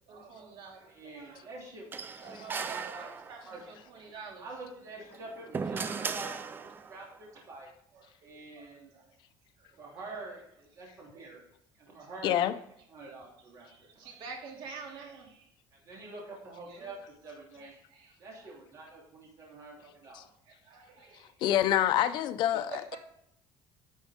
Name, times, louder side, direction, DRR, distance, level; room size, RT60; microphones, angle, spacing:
voice 1, 0.1-1.5 2.2-4.4 7.9-9.1 9.6-9.8 11.1-11.4 13.7-15.5 16.0-16.1 16.7-16.9 17.6-18.5 20.5-21.6 22.5-23.0, right 5 dB, 60° right, 2.5 m, -48 dB
voice 2, 0.9-3.6 4.4-7.7 8.2-8.9 9.8-11.4 11.9-12.6 12.9-14.1 15.7-17.0 17.2-17.7 18.2-20.3, right 2 dB, 35° right, 3.1 m, -46 dB
sound 1, 1.9-3.6 5.0-7.0, right 5 dB, 20° right, 0.5 m, -37 dB
voice 3, 12.2-12.5 20.1-20.2 21.4-23.0, left 12 dB, 55° left, 0.6 m, -26 dB
10.5 x 6.3 x 3.6 m
cardioid pair, 150°, 9 cm